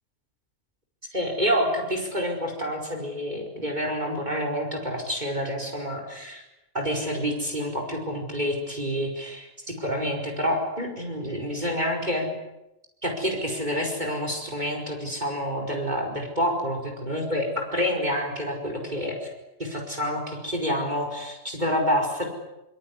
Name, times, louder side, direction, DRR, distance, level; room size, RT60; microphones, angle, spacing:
voice 1, 1.1-6.4 6.7-12.3 13.0-19.3 19.6-22.3, equal, 35° right, 2 dB, 5.1 m, -28 dB
25.0 x 23.0 x 9.8 m, 0.93 s
omnidirectional pair, 1.3 m